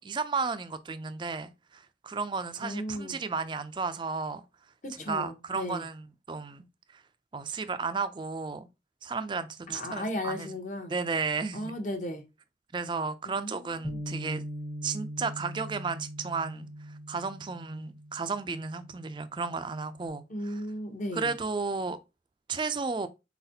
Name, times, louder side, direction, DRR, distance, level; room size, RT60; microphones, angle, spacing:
voice 1, 0.0-4.4 5.1-6.6 6.9-7.0 7.3-8.7 9.0-10.5 10.9-11.8 12.7-14.4 14.8-20.6 21.1-22.0 22.5-23.1, right 4 dB, 25° right, 0.4 m, -33 dB
voice 2, 2.6-3.2 4.8-5.9 9.7-10.9 11.5-12.3 13.2-14.0 20.3-21.3, left 1 dB, 45° left, 0.8 m, -36 dB
Bass guitar, 13.8-20.1, equal, 5° left, 0.7 m, -41 dB
4.3 x 4.0 x 2.7 m
head